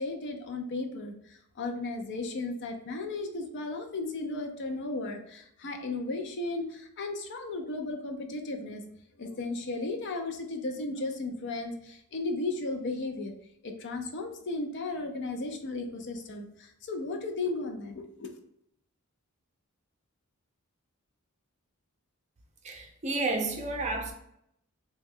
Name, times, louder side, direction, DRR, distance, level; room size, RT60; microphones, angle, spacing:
voice 1, 0.0-8.8 9.2-13.3 13.6-18.3, left 2 dB, 55° left, 0.5 m, -35 dB
voice 2, 22.6-24.1, right 2 dB, 30° right, 0.5 m, -31 dB
3.0 x 2.2 x 3.5 m
head